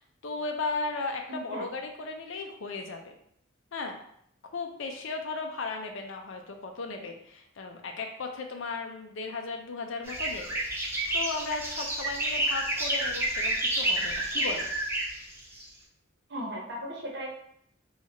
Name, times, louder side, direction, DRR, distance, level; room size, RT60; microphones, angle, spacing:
voice 1, 0.0-3.2 3.7-4.0 4.5-10.6 11.1-14.7, left 3 dB, 70° left, 3 dB, 0.5 m, -36 dB
voice 2, 1.3-1.7 16.3-17.3, equal, 55° right, -2 dB, 0.9 m, -37 dB
sound 1, 10.0-15.6, right 1 dB, 10° right, 0.6 m, -29 dB
2.9 x 2.4 x 4.2 m, 0.70 s
head